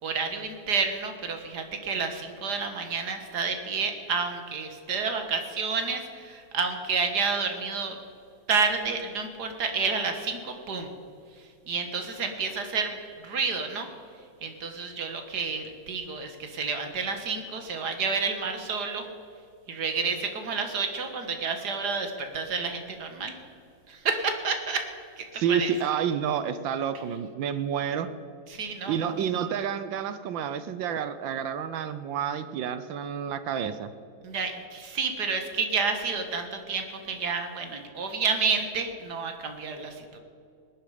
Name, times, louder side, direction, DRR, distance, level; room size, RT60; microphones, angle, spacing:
voice 1, 0.0-8.0 8.5-10.9 11.4-13.9 14.4-19.1 19.7-23.4 23.9-24.9 25.2-25.7 28.5-29.1 34.2-40.2, right 5 dB, 55° right, 6 dB, 2.0 m, -30 dB
voice 2, 25.3-28.1 28.9-33.9, right 8 dB, 75° right, 12 dB, 1.4 m, -29 dB
19.0 x 11.0 x 5.0 m, 2.4 s
omnidirectional pair, 2.2 m